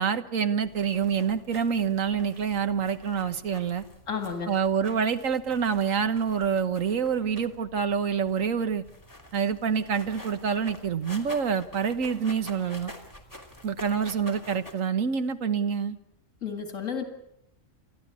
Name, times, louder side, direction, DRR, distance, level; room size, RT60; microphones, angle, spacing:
voice 1, 0.0-3.8 4.5-8.8 9.3-12.9 13.6-16.0, right 6 dB, 85° right, 10 dB, 1.6 m, -27 dB
sound 1, 0.6-14.7, equal, 15° left, 2.9 m, -48 dB
voice 2, 4.1-4.6 16.4-17.0, left 6 dB, 80° left, 5 dB, 2.4 m, -32 dB
29.5 x 13.5 x 8.4 m, 0.81 s
omnidirectional pair, 1.3 m